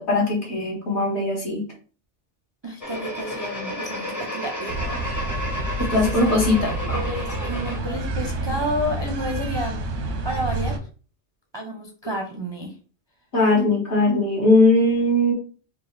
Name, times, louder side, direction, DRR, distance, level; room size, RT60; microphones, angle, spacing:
voice 1, 0.0-1.6 5.9-7.0 13.3-15.3, left 2 dB, 60° left, -1 dB, 1.7 m, -20 dB
voice 2, 2.6-4.8 5.9-10.8 11.5-12.7, equal, 35° right, 1 dB, 0.4 m, -31 dB
sound 1, 2.8-7.8, equal, 20° left, 0.6 m, -32 dB
sound 2, 4.7-10.8, right 2 dB, 90° right, 1.2 m, -28 dB
4.3 x 2.4 x 3.2 m, 0.39 s
omnidirectional pair, 1.3 m